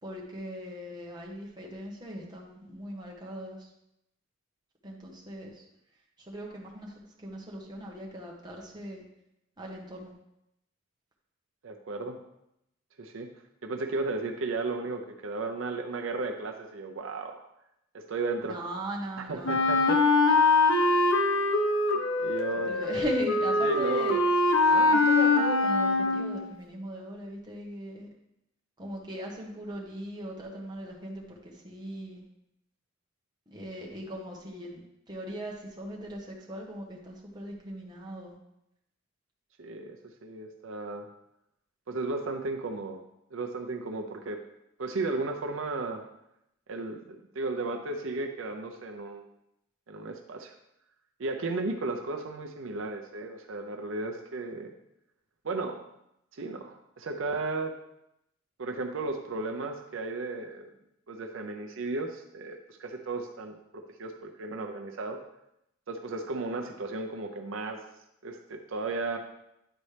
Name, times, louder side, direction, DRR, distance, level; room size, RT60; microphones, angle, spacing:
voice 1, 0.0-3.7 4.8-5.6 6.2-9.0 9.6-10.1 18.4-19.6 22.5-24.2 24.9-28.1 28.8-32.2 33.5-34.8 35.1-38.4, equal, 20° right, -2 dB, 1.1 m, -39 dB
voice 2, 11.6-12.2 13.0-13.3 13.6-17.4 17.9-18.6 19.2-20.0 22.2-22.7 23.6-24.1 24.7-24.9 39.6-41.1 41.9-43.0 43.3-44.4 44.8-46.0 46.7-49.2 49.9-50.5 51.2-54.7 55.4-55.8 56.3-57.7 58.6-60.7 61.1-65.2 65.9-67.9 68.2-69.2, right 3 dB, 75° right, 4 dB, 0.6 m, -34 dB
Wind instrument woodwind instrument, 19.4-26.4, left 3 dB, 85° left, 0.8 m, -23 dB
10.0 x 4.1 x 3.3 m, 0.82 s
head